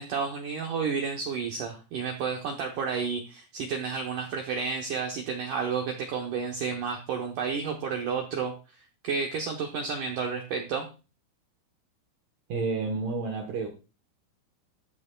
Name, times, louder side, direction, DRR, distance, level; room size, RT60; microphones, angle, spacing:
voice 1, 0.0-10.9, right 5 dB, 90° right, 1.8 m, -31 dB
voice 2, 12.5-13.7, right 4 dB, 70° right, 2.2 m, -30 dB
13.5 x 7.8 x 2.3 m
omnidirectional pair, 5.2 m